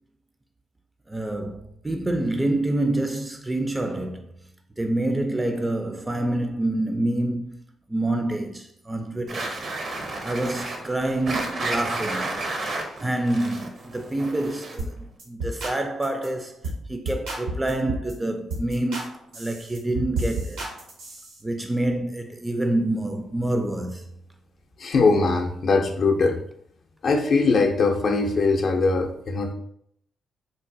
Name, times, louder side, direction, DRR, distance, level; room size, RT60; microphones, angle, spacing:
voice 1, 1.1-4.3 4.8-7.5 7.9-9.5 10.2-12.3 13.0-16.6 16.9-20.6 21.4-24.0, right 1 dB, 20° right, 0.4 m, -27 dB
sound 1, 9.3-14.9, right 2 dB, 55° right, 0.6 m, -31 dB
sound 2, 14.8-14.9 15.2-15.8 16.0-16.3 16.6-16.8 17.1-18.1 18.5-19.1 19.3-21.4, right 2 dB, 85° right, 0.9 m, -31 dB
voice 2, 24.8-26.4 27.0-29.5, left 3 dB, 60° left, 0.5 m, -21 dB
3.8 x 2.1 x 2.6 m
hypercardioid pair, 50°, 0 cm